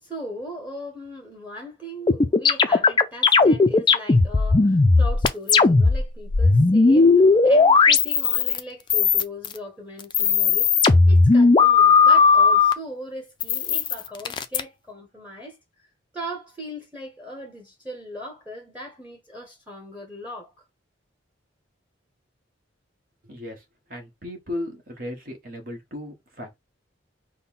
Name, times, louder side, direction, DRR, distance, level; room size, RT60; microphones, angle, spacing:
voice 1, 0.0-7.1 7.4-15.6 16.1-20.5, equal, 10° right, 1.1 m, -38 dB
sound 1, 2.1-6.0 6.3-8.6 8.9-9.6 10.0-12.7 13.4-14.6, left 4 dB, 25° left, 0.4 m, -16 dB
voice 2, 23.2-23.6 23.9-26.6, left 1 dB, 50° right, 1.4 m, -35 dB
5.4 x 2.2 x 4.1 m
head